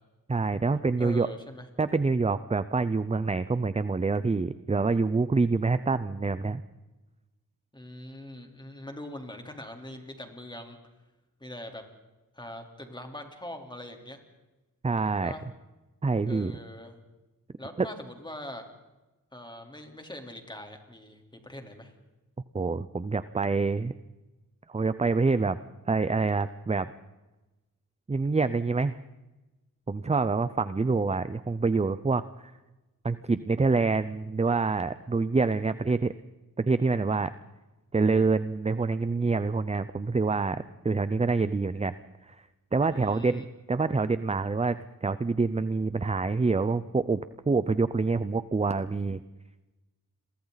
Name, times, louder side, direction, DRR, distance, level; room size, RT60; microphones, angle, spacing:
voice 1, 0.3-1.3 1.8-6.6 14.8-15.3 16.0-16.5 17.8-17.9 22.5-23.9 24.7-25.6 25.9-26.9 28.1-29.0 29.9-32.2 33.0-36.1 36.6-37.3 37.9-41.9 42.3-42.4 42.7-47.2 47.5-49.2, right 4 dB, 20° right, 13 dB, 0.6 m, -26 dB
voice 2, 1.0-1.7 7.7-10.8 11.4-11.8 12.4-14.2 15.2-15.4 16.2-17.0 17.6-18.7 19.3-21.9 42.9-43.5, left 1 dB, 15° left, 3 dB, 3.7 m, -42 dB
29.5 x 23.0 x 4.1 m, 1.1 s
wide cardioid pair, 95°, 35 cm